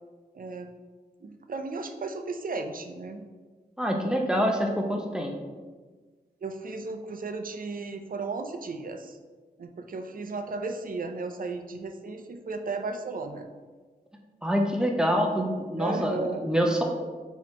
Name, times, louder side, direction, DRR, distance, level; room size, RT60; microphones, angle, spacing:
voice 1, 0.3-0.7 1.2-3.2 6.4-9.2 9.6-13.5 15.8-16.5, right 3 dB, 55° right, 6 dB, 0.5 m, -35 dB
voice 2, 3.8-5.3 14.4-16.8, equal, 5° right, 1 dB, 0.7 m, -26 dB
4.1 x 3.0 x 4.3 m, 1.4 s
wide cardioid pair, 65°, 17 cm